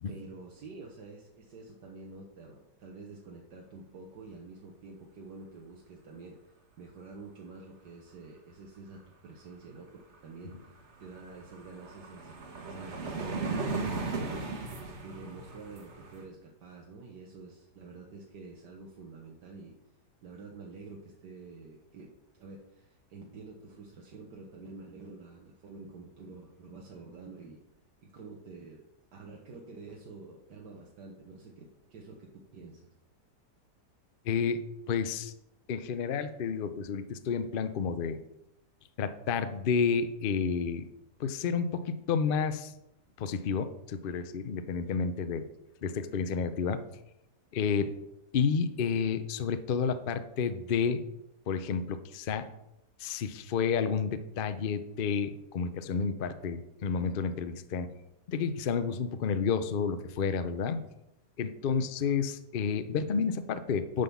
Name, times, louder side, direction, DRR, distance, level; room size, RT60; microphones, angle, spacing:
voice 1, 0.1-12.3 12.6-14.7 15.0-19.7 20.2-27.6 28.0-28.8 29.1-32.8 47.7-47.9, right 3 dB, 80° right, -1 dB, 1.7 m, -48 dB
sound 1, 10.1-10.2 10.5-16.2, right 3 dB, 45° right, 1.3 m, -37 dB
voice 2, 34.2-35.3 35.7-38.2 39.0-40.9 41.2-42.7 43.2-45.5 45.8-46.8 47.5-47.9 48.3-51.0 51.5-52.5 53.0-57.9 58.3-60.8 61.4-64.0, left 6 dB, 75° left, 10 dB, 0.4 m, -30 dB
10.5 x 3.9 x 6.9 m, 0.86 s
omnidirectional pair, 1.8 m